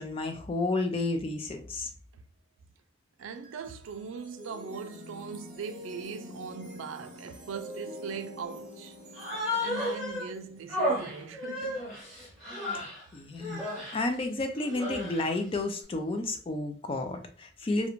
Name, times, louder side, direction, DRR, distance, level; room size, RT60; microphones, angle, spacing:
voice 1, 0.0-1.9 12.7-12.8 13.1-13.6 13.9-17.9, left 2 dB, 30° left, 0.3 m, -31 dB
sound 1, 3.2-12.5, left 1 dB, 35° right, 0.8 m, -47 dB
voice 2, 3.2-9.0 9.6-11.9, right 6 dB, 85° right, 0.3 m, -40 dB
Human voice, 9.1-10.3 10.7-13.0 13.4-14.0 14.6-15.4, left 1 dB, ahead, 1.1 m, -33 dB
2.4 x 2.1 x 2.9 m
head